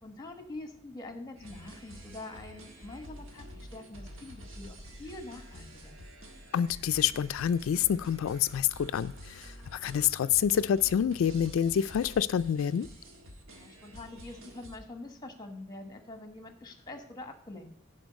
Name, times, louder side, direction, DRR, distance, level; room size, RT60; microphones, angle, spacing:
voice 1, 0.0-6.0 13.5-17.7, left 2 dB, 20° left, 1.3 m, -45 dB
sound 1, 1.4-14.8, equal, 75° right, 1.4 m, -48 dB
voice 2, 6.5-12.9, left 9 dB, 80° left, 0.3 m, -27 dB
11.0 x 4.4 x 5.2 m
head